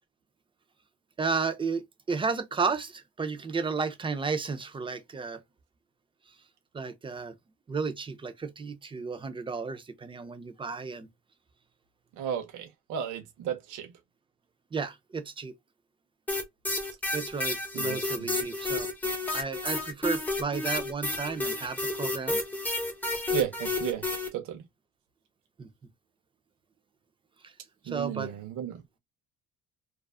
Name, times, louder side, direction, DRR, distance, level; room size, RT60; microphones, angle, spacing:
voice 1, 1.2-5.4 6.7-7.3 7.7-11.1 14.7-15.5 17.1-18.9 19.3-22.4 25.6-25.7 27.4-27.5 27.8-28.3, right 4 dB, 15° right, 0.3 m, -33 dB
voice 2, 12.2-13.9 17.7-18.4 23.3-24.0 24.3-24.6 27.9-28.8, right 9 dB, 65° right, 0.6 m, -34 dB
sound 1, 16.3-24.3, left 2 dB, 5° left, 0.7 m, -31 dB
2.4 x 2.3 x 2.3 m
cardioid pair, 120°, 34 cm